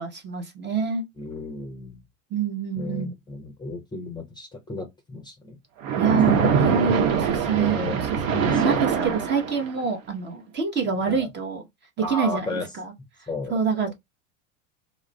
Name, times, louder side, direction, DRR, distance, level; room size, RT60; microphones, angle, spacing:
voice 1, 0.0-1.0 2.3-3.1 6.0-11.6 12.1-12.9 13.5-13.9, right 5 dB, 25° right, 0.8 m, -26 dB
voice 2, 1.2-2.0 2.8-5.6 6.3-6.5 7.4-9.2 11.0-11.3 12.0-12.7 13.3-13.5, left 2 dB, 10° left, 0.6 m, -33 dB
Splash splatter, 5.8-9.8, right 6 dB, 70° right, 0.8 m, -23 dB
2.3 x 2.0 x 3.2 m
hypercardioid pair, 90°, 40 cm